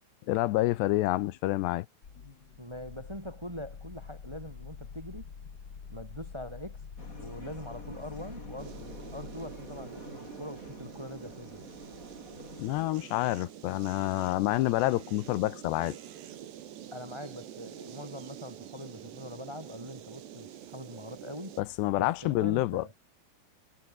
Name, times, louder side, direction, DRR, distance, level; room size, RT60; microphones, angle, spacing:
voice 1, 0.3-1.9 12.6-16.0 21.6-22.8, left 17 dB, 85° left, 3.0 m, -28 dB
sound 1, 2.0-10.2, left 6 dB, 40° left, 1.5 m, -47 dB
voice 2, 2.6-5.3 5.9-6.8 7.2-11.6 16.9-21.6 22.0-22.9, equal, 5° right, 3.8 m, -43 dB
sound 2, 7.0-12.8, left 2 dB, 20° left, 6.3 m, -48 dB
sound 3, 8.6-21.6, right 11 dB, 85° right, 4.3 m, -47 dB
omnidirectional pair, 4.8 m